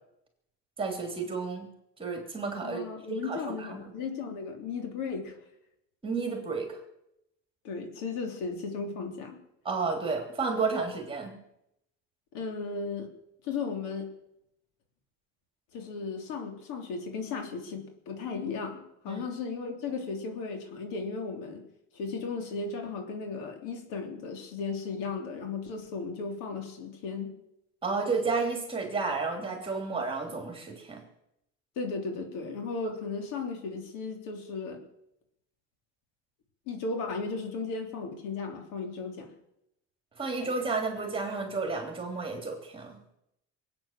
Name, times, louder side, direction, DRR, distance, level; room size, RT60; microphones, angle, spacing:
voice 1, 0.8-1.7 2.0-2.8 3.1-3.9 6.0-6.8 9.6-11.4 19.1-19.2 27.8-31.0 40.2-43.0, right 4 dB, 15° right, 3 dB, 3.1 m, -32 dB
voice 2, 2.6-5.4 7.6-9.4 12.3-13.1 13.4-14.1 15.7-21.6 21.9-27.3 31.7-34.8 36.7-39.3, left 4 dB, 80° left, 3 dB, 3.3 m, -35 dB
22.0 x 8.8 x 7.4 m, 0.82 s
cardioid pair, 145°, 32 cm